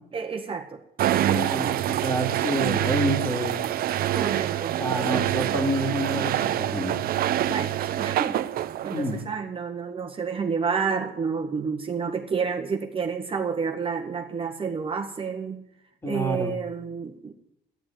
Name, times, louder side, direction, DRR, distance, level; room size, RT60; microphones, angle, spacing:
voice 1, 0.1-0.8 1.1-1.9 4.1-5.3 7.4-8.4 8.8-15.6 16.1-17.3, right 5 dB, 30° right, 2 dB, 1.7 m, -30 dB
sound 1, 1.0-9.2, right 12 dB, 60° right, 0.7 m, -26 dB
voice 2, 1.2-3.6 4.8-7.0 8.9-9.2 16.0-16.6, equal, 15° left, 5 dB, 2.8 m, -28 dB
13.0 x 11.0 x 9.2 m, 0.82 s
cardioid pair, 110°, 17 cm